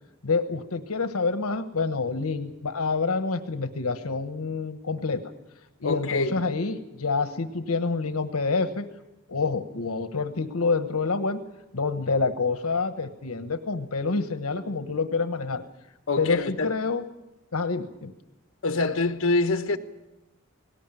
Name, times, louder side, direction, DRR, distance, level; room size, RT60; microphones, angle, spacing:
voice 1, 0.2-5.2 5.8-8.9 9.3-11.4 11.7-15.6 16.2-17.0 17.5-18.1, left 4 dB, 85° left, 1.1 m, -27 dB
voice 2, 5.8-6.4 16.1-16.7 18.6-19.8, left 3 dB, 65° left, 1.2 m, -25 dB
18.0 x 18.0 x 9.1 m
head